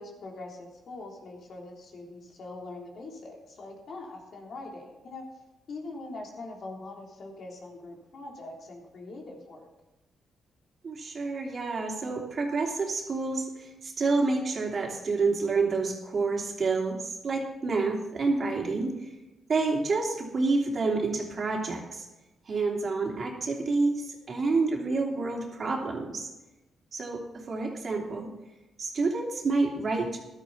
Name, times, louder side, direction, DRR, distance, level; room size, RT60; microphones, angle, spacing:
voice 1, 0.0-5.2 5.7-9.7, left 2 dB, 60° left, 0 dB, 3.4 m, -42 dB
voice 2, 10.8-17.0 17.2-19.1 19.5-22.0 22.5-26.3 26.9-27.2 27.5-28.3 28.8-30.2, right 3 dB, 45° right, 0 dB, 3.0 m, -28 dB
14.5 x 12.0 x 4.2 m, 1.0 s
cardioid pair, 95°, 0 cm